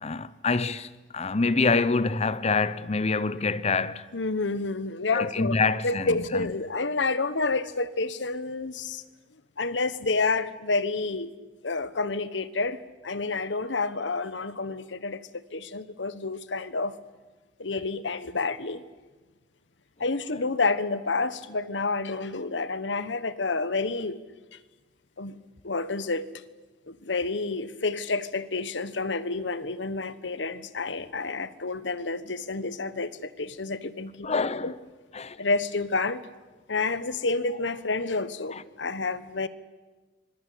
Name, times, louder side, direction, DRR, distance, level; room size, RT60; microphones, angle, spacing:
voice 1, 0.0-4.1 5.1-6.5 34.2-34.7 35.1-35.4 38.5-38.6, left 4 dB, 35° left, 0.9 m, -26 dB
voice 2, 4.1-5.6 5.8-9.0 9.6-11.3 11.6-16.9 17.6-18.8 20.0-24.2 25.2-25.4 25.6-26.3 26.9-34.3 34.6-34.7 35.4-36.2 36.7-39.5, left 3 dB, 80° left, 1.2 m, -29 dB
26.0 x 22.5 x 8.5 m
head